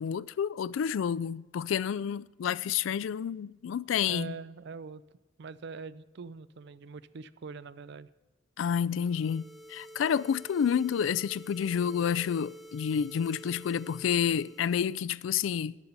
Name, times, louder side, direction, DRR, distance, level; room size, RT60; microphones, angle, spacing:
voice 1, 0.0-4.4 8.6-15.8, left 8 dB, 80° left, 0.3 m, -29 dB
voice 2, 4.1-5.0 5.4-8.1, right 5 dB, 60° right, 0.4 m, -43 dB
sound 1, 8.9-15.0, right 1 dB, ahead, 0.5 m, -50 dB
13.5 x 11.0 x 4.0 m
head